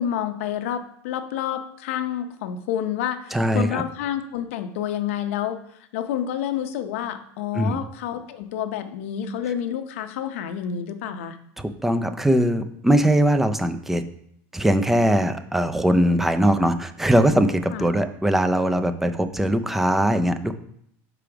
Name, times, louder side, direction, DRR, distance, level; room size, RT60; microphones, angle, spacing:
voice 1, 0.0-5.6 5.9-11.4 17.7-17.9, left 9 dB, 80° left, 8 dB, 0.7 m, -29 dB
voice 2, 3.3-3.8 7.5-7.8 11.6-14.0 14.5-20.6, right 1 dB, 5° right, 9 dB, 0.4 m, -21 dB
5.0 x 5.0 x 5.9 m, 0.70 s
supercardioid pair, 165°, 7 cm